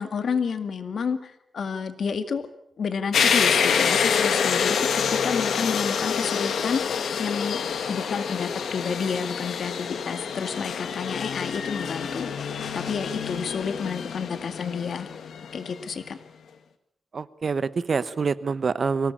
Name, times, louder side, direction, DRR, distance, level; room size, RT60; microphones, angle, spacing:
voice 1, 0.0-2.5 2.8-7.6 7.9-15.1 15.5-16.2, left 6 dB, 65° left, 9 dB, 2.0 m, -30 dB
sound 1, 3.1-15.8, left 7 dB, 85° left, 2.0 m, -27 dB
voice 2, 17.1-19.1, right 5 dB, 45° right, 16 dB, 1.0 m, -26 dB
24.0 x 18.5 x 8.6 m, 0.72 s
wide cardioid pair, 130°, 0 cm